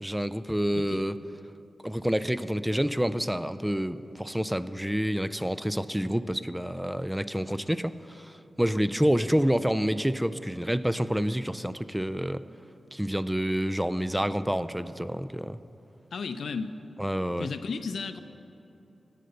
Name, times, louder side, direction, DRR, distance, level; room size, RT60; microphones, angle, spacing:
voice 1, 0.0-1.2 1.8-12.4 12.9-15.6 17.0-17.5, equal, 5° right, 13 dB, 0.4 m, -28 dB
voice 2, 16.1-16.7 17.4-18.2, left 5 dB, 85° left, 11 dB, 0.5 m, -34 dB
18.5 x 6.8 x 6.6 m, 2.9 s
wide cardioid pair, 95°, 0 cm